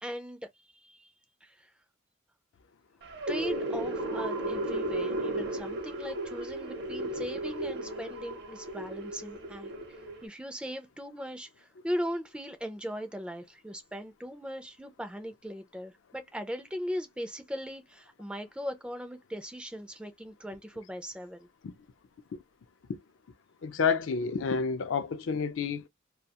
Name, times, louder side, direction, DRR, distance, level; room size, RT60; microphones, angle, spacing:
voice 1, 0.0-0.4 0.7-1.1 1.4-1.7 3.3-21.5, equal, 5° right, 0.3 m, -39 dB
sound 1, 3.0-10.3, right 1 dB, 55° right, 0.6 m, -34 dB
voice 2, 23.6-25.9, left 5 dB, 70° left, 0.4 m, -29 dB
2.3 x 2.2 x 2.8 m
head